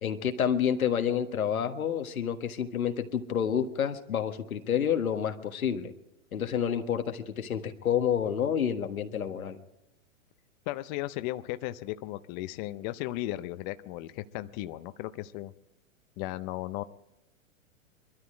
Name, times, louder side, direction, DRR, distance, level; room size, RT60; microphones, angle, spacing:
voice 1, 0.0-5.9 6.3-9.6, left 8 dB, 90° left, 6 dB, 1.6 m, -29 dB
voice 2, 10.7-15.5 16.2-16.8, left 16 dB, 35° left, 11 dB, 0.6 m, -36 dB
22.5 x 13.0 x 4.9 m, 0.92 s
hypercardioid pair, 125°, 41 cm